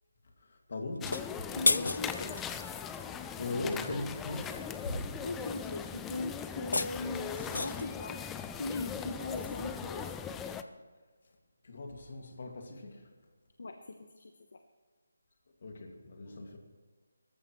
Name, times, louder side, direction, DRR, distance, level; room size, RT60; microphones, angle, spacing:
voice 1, 0.4-1.1 3.4-4.5 4.8-5.0 11.6-13.1 15.6-16.6, left 2 dB, 45° left, 3 dB, 2.2 m, -39 dB
sound 1, 0.9-2.5 6.4-8.0, left 3 dB, 80° left, 0.5 m, -32 dB
sound 2, 1.0-10.6, left 7 dB, 5° left, 0.3 m, -40 dB
voice 2, 1.5-2.4 5.2-8.2 8.6-10.1 13.6-14.6, left 3 dB, 60° left, 6 dB, 1.0 m, -39 dB
23.0 x 14.0 x 3.1 m, 1.5 s
hypercardioid pair, 175°, 0 cm